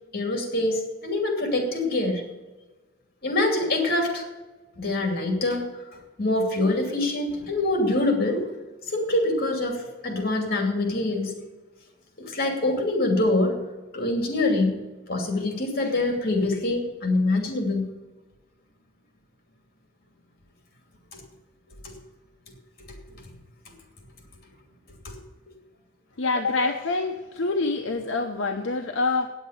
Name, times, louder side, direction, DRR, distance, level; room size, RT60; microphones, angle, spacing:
voice 1, 0.1-2.3 3.2-4.2 4.8-5.8 6.2-8.5 8.9-11.4 12.2-13.6 13.9-14.8 15.1-17.9 21.1-21.2 21.8-21.9 22.8-23.2 25.0-25.2, left 2 dB, 55° left, 3 dB, 2.7 m, -25 dB
voice 2, 26.2-29.3, left 3 dB, 75° left, 5 dB, 0.8 m, -26 dB
9.0 x 8.0 x 9.3 m, 1.2 s
head